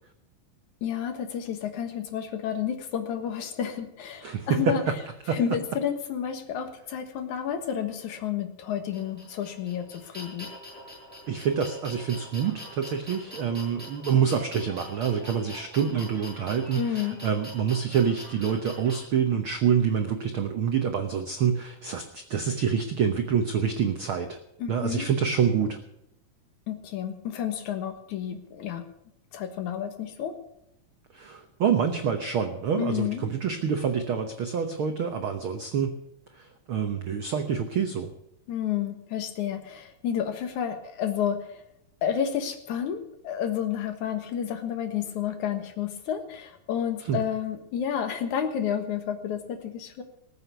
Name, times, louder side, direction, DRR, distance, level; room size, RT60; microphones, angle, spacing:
voice 1, 0.8-4.8 5.3-10.5 16.8-17.2 24.6-25.1 26.7-28.9 29.3-30.4 32.8-33.2 38.5-41.6 42.0-50.0, left 9 dB, 65° left, 7 dB, 2.6 m, -30 dB
voice 2, 4.2-4.7 5.3-5.4 11.3-24.4 24.7-25.8 31.1-35.9 36.3-38.1 47.0-47.2, right 7 dB, 90° right, 6 dB, 1.1 m, -27 dB
sound 1, 8.9-19.0, left 1 dB, 15° right, 7.6 m, -43 dB
19.5 x 7.9 x 6.8 m, 0.80 s
omnidirectional pair, 3.9 m